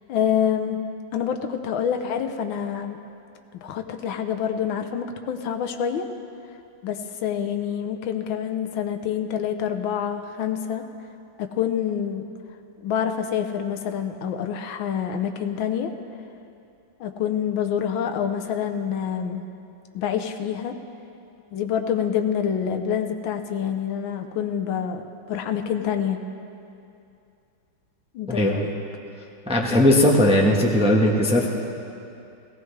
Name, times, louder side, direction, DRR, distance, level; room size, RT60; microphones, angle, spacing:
voice 1, 0.1-0.8 1.1-3.0 3.6-6.0 6.8-10.8 11.4-12.2 12.8-15.9 17.0-19.4 19.9-20.8 21.5-26.2 28.1-28.7, left 8 dB, 80° left, 6 dB, 1.6 m, -27 dB
voice 2, 28.3-28.6 29.5-31.5, left 1 dB, 5° right, -1 dB, 0.8 m, -18 dB
18.0 x 17.5 x 3.3 m, 2.6 s
omnidirectional pair, 2.1 m